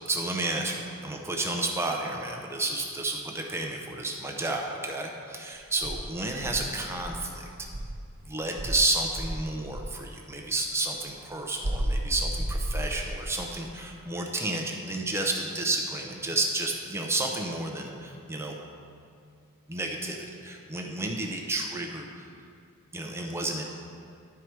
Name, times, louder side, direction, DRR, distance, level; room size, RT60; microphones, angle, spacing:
voice 1, 0.1-7.7 8.2-18.5 19.7-20.2 20.4-22.3 22.9-23.6, right 2 dB, 10° right, 1 dB, 0.6 m, -31 dB
Insect, 5.8-8.1 8.5-10.0 11.6-13.3, right 1 dB, 65° right, 1.2 m, -32 dB
12.0 x 4.7 x 4.6 m, 2.4 s
head